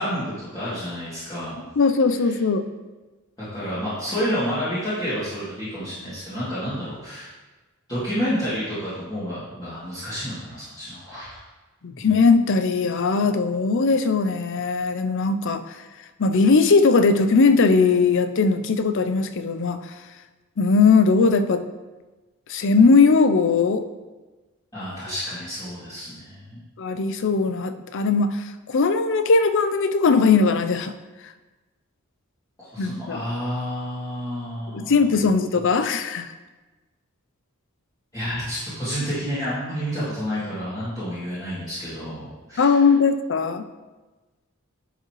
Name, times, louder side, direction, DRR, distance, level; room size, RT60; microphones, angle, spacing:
voice 1, 0.0-1.5 2.2-2.3 3.4-7.3 7.9-11.4 11.9-12.1 24.7-26.6 32.6-35.2 38.1-42.9, equal, 20° left, -14 dB, 2.6 m, -30 dB
voice 2, 1.8-2.6 11.8-15.6 16.2-19.8 20.6-21.6 22.5-23.8 26.8-30.9 32.8-33.2 34.7-36.3 42.6-43.6, left 4 dB, 60° left, 10 dB, 0.5 m, -19 dB
11.0 x 5.5 x 3.1 m, 1.2 s
head